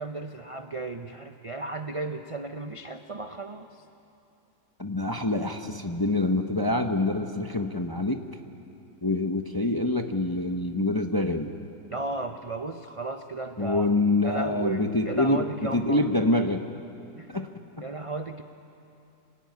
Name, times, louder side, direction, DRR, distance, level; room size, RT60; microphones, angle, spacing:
voice 1, 0.0-3.7 11.9-13.9 14.2-16.1 17.2-17.5 17.8-18.4, right 3 dB, 45° right, 6 dB, 0.4 m, -35 dB
voice 2, 4.8-8.2 9.0-11.5 13.6-16.6 17.3-17.5, left 2 dB, 20° left, 5 dB, 0.7 m, -26 dB
26.5 x 18.0 x 9.5 m, 2.7 s
omnidirectional pair, 1.9 m